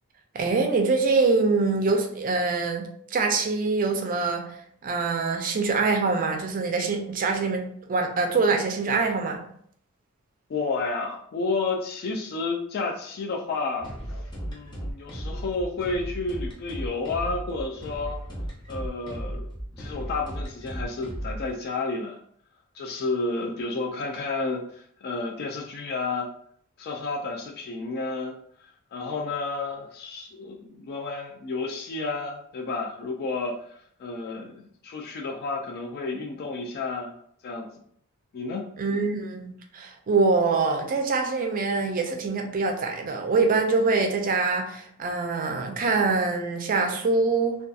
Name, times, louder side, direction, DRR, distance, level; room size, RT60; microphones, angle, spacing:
voice 1, 0.3-4.5 4.8-9.4 38.8-47.6, right 4 dB, 40° right, 3 dB, 0.4 m, -24 dB
voice 2, 10.5-13.9 14.4-18.2 18.7-19.5 19.8-22.2 22.7-26.3 26.8-28.4 28.9-37.7 38.3-38.6, left 3 dB, 45° left, 0 dB, 0.3 m, -31 dB
sound 1, 13.8-21.5, equal, 20° left, 0.7 m, -35 dB
2.6 x 2.3 x 2.3 m, 0.64 s
head